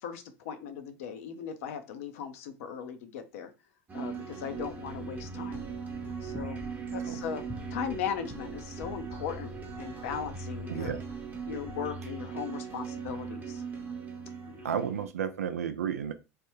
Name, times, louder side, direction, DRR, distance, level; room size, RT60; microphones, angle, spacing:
voice 1, 0.0-3.5 3.9-5.6 6.2-6.6 6.9-7.4 7.7-10.9 11.4-13.6 14.4-14.7, left 7 dB, 70° left, 8 dB, 0.6 m, -38 dB
sound 1, 3.9-15.1, right 5 dB, 20° right, 0.8 m, -39 dB
sound 2, 4.5-11.8, left 1 dB, 5° left, 0.6 m, -48 dB
voice 2, 10.7-11.0 14.6-16.1, right 8 dB, 85° right, 10 dB, 0.4 m, -32 dB
3.2 x 2.2 x 3.1 m, 0.29 s
hypercardioid pair, 80°, 8 cm